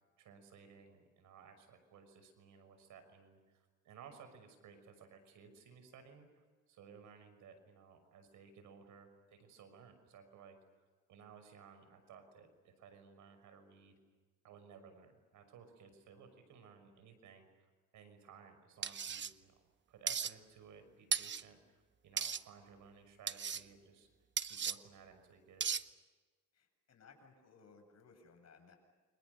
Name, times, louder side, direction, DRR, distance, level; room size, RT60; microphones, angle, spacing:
voice 1, 0.2-10.6 11.1-14.0 14.4-17.7 17.9-19.5 19.9-24.1 24.4-25.7, right 6 dB, 80° right, 8 dB, 6.0 m, -58 dB
sound 1, 18.8-19.3 20.1-20.3 21.1-21.4 22.2-22.4 23.3-23.6 24.4-24.8 25.6-25.8, right 7 dB, 40° right, 1.0 m, -36 dB
voice 2, 26.5-28.8, left 4 dB, 60° left, 5 dB, 7.6 m, -62 dB
29.5 x 26.5 x 6.8 m, 1.3 s
cardioid pair, 90°, 30 cm